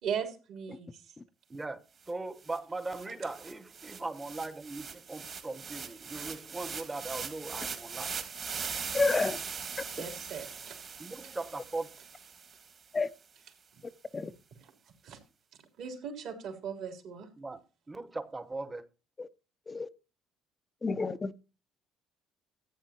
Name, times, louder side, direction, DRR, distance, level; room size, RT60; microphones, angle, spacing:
voice 1, 0.0-1.1 6.1-6.3 10.0-10.8 11.2-11.3 15.0-15.2 15.8-17.3, right 7 dB, 65° right, 3.2 m, -38 dB
voice 2, 1.5-8.2 11.0-11.9 17.4-17.6 17.9-18.8, right 3 dB, 20° right, 1.1 m, -39 dB
sound 1, 2.1-2.2 2.4-12.8, right 6 dB, 45° right, 2.0 m, -41 dB
voice 3, 8.9-9.4 12.9-13.1 14.1-14.3 19.2-19.3 19.7-19.9 20.8-21.4, left 3 dB, 30° left, 0.7 m, -29 dB
14.5 x 9.0 x 2.9 m
hypercardioid pair, 65°, 0 cm